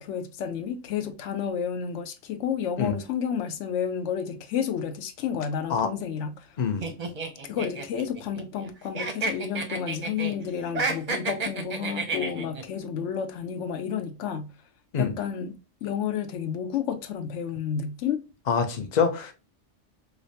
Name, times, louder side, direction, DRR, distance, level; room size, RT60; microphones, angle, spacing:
voice 1, 0.0-6.5 7.5-14.5 15.0-18.2, left 8 dB, 75° left, 0.9 m, -31 dB
voice 2, 6.6-6.9 14.9-15.2 18.5-19.3, left 6 dB, 45° left, 0.6 m, -25 dB
sound 1, 6.8-8.7 8.9-10.3 10.7-12.6, right 3 dB, 45° right, 0.6 m, -31 dB
4.9 x 2.1 x 2.7 m
omnidirectional pair, 1.2 m